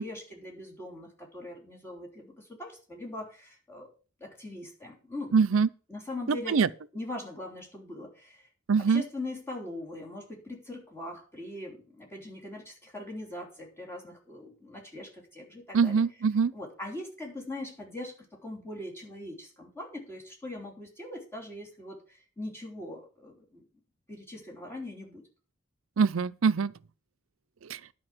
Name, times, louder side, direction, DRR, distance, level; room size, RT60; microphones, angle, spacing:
voice 1, 0.0-3.9 4.2-5.3 5.9-8.4 8.9-16.0 16.5-22.0 22.4-23.6 24.1-25.2, left 1 dB, 15° left, 3.3 m, -41 dB
voice 2, 5.3-5.7 6.3-6.7 8.7-9.0 15.7-16.5 26.0-26.7, right 5 dB, 75° right, 0.5 m, -23 dB
11.0 x 5.1 x 7.6 m
head